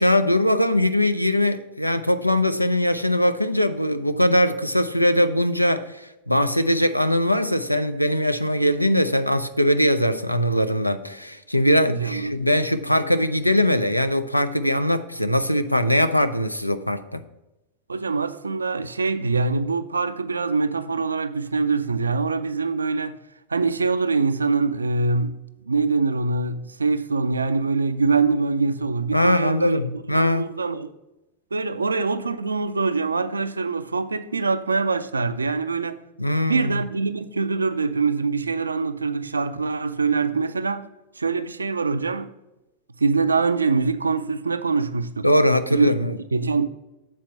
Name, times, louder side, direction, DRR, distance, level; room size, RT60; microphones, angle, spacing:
voice 1, 0.0-17.2 29.1-30.5 36.2-36.8 45.2-46.2, left 1 dB, 90° left, 0.4 m, -21 dB
voice 2, 11.8-12.4 17.9-23.1 23.5-25.4 25.7-30.9 31.5-36.0 36.5-40.9 41.2-42.3 43.0-45.3 45.7-45.9 46.3-46.7, right 4 dB, 75° right, 0.4 m, -24 dB
7.4 x 4.4 x 6.2 m
figure-of-eight pair, 90°, 0 cm